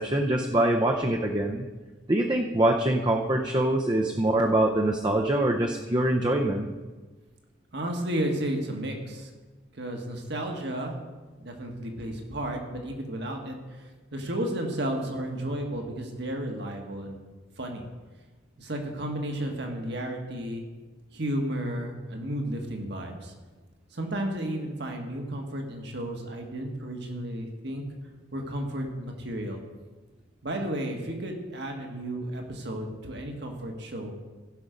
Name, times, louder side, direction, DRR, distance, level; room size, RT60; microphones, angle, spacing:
voice 1, 0.0-1.7 2.1-6.7, right 1 dB, 25° right, 2 dB, 0.7 m, -24 dB
voice 2, 7.7-9.3 9.7-11.0 11.4-17.2 17.6-17.8 18.6-20.6 21.1-23.3 23.9-27.8 28.3-29.6 30.4-34.1, right 1 dB, 65° right, 2 dB, 1.7 m, -33 dB
16.0 x 6.2 x 5.3 m, 1.3 s
head